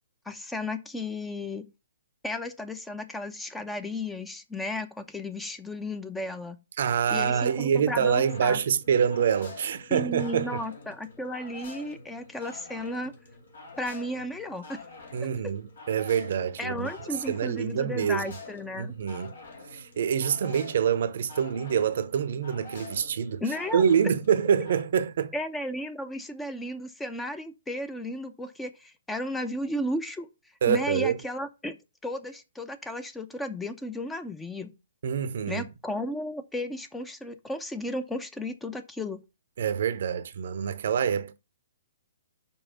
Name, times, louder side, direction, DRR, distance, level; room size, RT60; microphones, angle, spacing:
voice 1, 0.3-1.7 2.2-6.6 7.1-8.6 9.9-13.1 13.8-14.8 15.4-15.5 16.6-18.9 23.4-23.9 25.3-30.3 30.7-31.8 32.0-34.7 35.5-39.2, left 1 dB, 5° left, 0.6 m, -34 dB
voice 2, 6.8-10.6 15.1-15.6 15.9-18.2 18.8-19.3 19.7-23.4 23.7-25.3 30.6-31.2 35.0-35.6 39.6-41.4, right 7 dB, 60° right, 0.7 m, -26 dB
sound 1, 7.4-24.8, left 3 dB, 70° left, 2.3 m, -47 dB
5.5 x 4.3 x 5.6 m
figure-of-eight pair, 125°, 0 cm